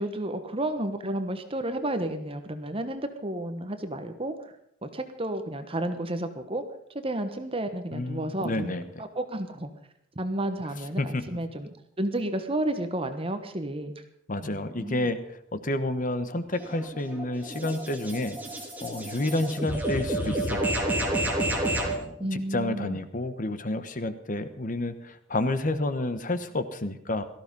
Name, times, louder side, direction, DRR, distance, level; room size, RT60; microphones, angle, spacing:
voice 1, 0.0-4.5 4.8-6.6 7.0-8.7 9.1-9.7 10.1-11.7 12.0-14.0 14.4-15.1 22.2-23.0, right 1 dB, 30° right, 8 dB, 1.2 m, -31 dB
voice 2, 7.9-9.0 11.0-11.2 14.3-18.4 18.8-20.7 21.7-27.2, left 2 dB, 45° left, 11 dB, 1.2 m, -30 dB
sound 1, 16.5-22.0, right 1 dB, 10° right, 3.2 m, -30 dB
17.5 x 14.0 x 5.4 m, 0.74 s
head